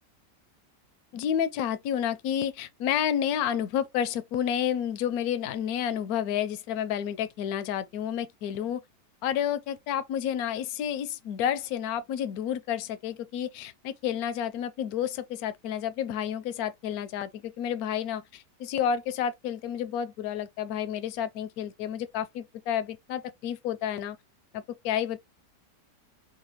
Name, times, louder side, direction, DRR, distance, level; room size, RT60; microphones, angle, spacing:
voice 1, 1.1-8.8 9.2-24.2 24.5-25.2, left 9 dB, 70° left, 1.0 m, -30 dB
5.6 x 2.2 x 2.9 m
omnidirectional pair, 1.8 m